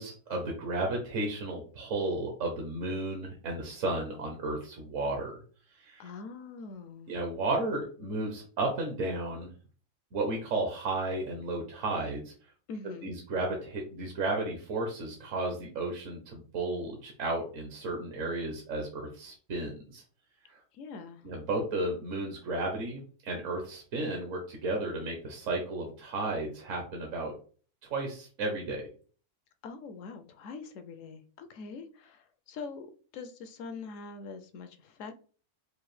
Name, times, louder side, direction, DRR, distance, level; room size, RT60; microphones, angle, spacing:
voice 1, 0.0-5.3 5.7-6.1 7.1-9.5 10.1-12.3 13.0-20.0 20.4-20.6 21.2-27.3 27.8-28.8, right 2 dB, 65° right, 1.1 m, -33 dB
voice 2, 6.0-7.1 12.7-13.2 20.7-21.2 29.6-32.9 33.1-35.1, left 4 dB, 70° left, 0.9 m, -43 dB
4.8 x 2.5 x 3.1 m
omnidirectional pair, 1.6 m